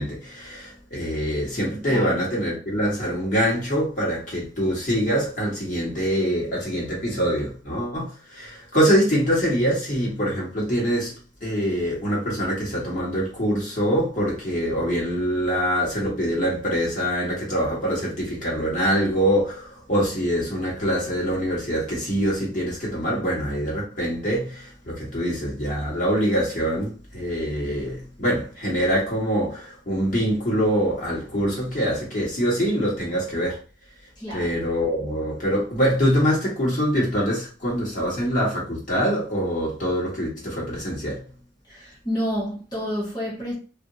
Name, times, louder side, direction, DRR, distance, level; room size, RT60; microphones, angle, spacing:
voice 1, 0.0-33.6 34.3-41.2, equal, 45° left, 1.3 m, -24 dB
voice 2, 34.2-34.5 41.7-43.5, equal, 25° left, 1.2 m, -29 dB
2.8 x 2.6 x 2.7 m
head